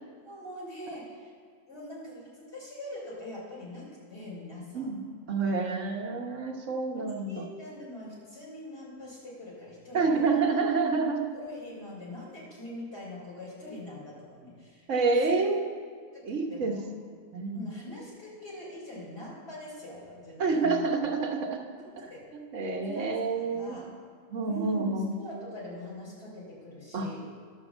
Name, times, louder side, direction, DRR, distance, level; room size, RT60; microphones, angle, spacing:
voice 1, 0.2-1.3 1.7-4.9 6.9-10.2 11.3-14.9 15.2-15.3 16.3-16.8 17.5-20.8 22.1-22.2 22.8-23.2 23.5-23.9 24.4-27.2, left 1 dB, 55° left, -5 dB, 3.9 m, -43 dB
voice 2, 5.3-7.5 9.9-11.2 14.9-15.7 16.2-16.8 17.3-17.7 20.4-21.6 22.0-23.8 24.3-25.1 26.9-27.1, right 4 dB, 80° right, 2 dB, 1.4 m, -28 dB
11.0 x 6.4 x 7.1 m, 2.1 s
omnidirectional pair, 1.3 m